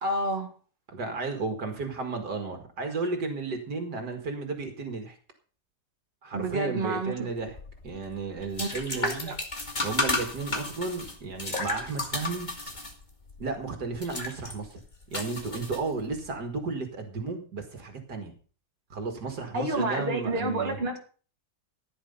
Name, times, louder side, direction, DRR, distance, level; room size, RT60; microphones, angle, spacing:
voice 1, 0.0-0.5 6.3-7.3 8.6-9.4 19.5-21.0, right 2 dB, 35° right, 2 dB, 2.6 m, -30 dB
voice 2, 0.9-5.2 6.2-7.6 7.8-9.3 9.8-12.5 13.4-14.8 15.1-18.3 18.9-20.8, right 4 dB, 70° right, 5 dB, 2.5 m, -33 dB
sound 1, 7.4-16.3, left 2 dB, 25° left, 2.6 m, -34 dB
15.0 x 9.9 x 5.5 m, 0.41 s
omnidirectional pair, 1.8 m